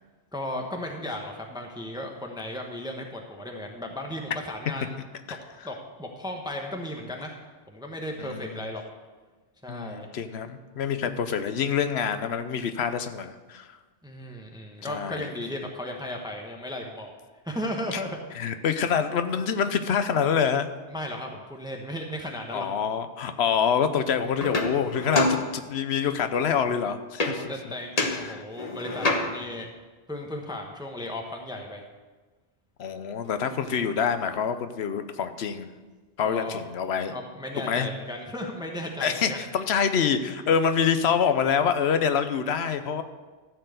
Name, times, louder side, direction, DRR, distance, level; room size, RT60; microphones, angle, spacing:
voice 1, 0.3-5.0 5.6-7.3 7.7-8.8 9.6-10.1 14.0-17.1 17.4-18.2 20.9-22.7 27.3-29.7 30.1-31.8 36.2-36.6 37.1-39.4, left 1 dB, 5° right, 1 dB, 1.0 m, -35 dB
voice 2, 8.2-8.5 9.7-13.8 14.8-15.3 17.9-18.0 18.3-20.7 22.5-27.5 28.0-28.4 32.8-35.7 36.2-37.1 37.6-37.9 39.0-43.0, left 7 dB, 80° left, 10 dB, 1.0 m, -26 dB
sound 1, 24.4-26.0 27.2-27.6 28.0-29.6 32.9-33.0 33.2-34.3, left 2 dB, 40° left, 1.1 m, -29 dB
13.5 x 4.6 x 7.8 m, 1.3 s
omnidirectional pair, 1.1 m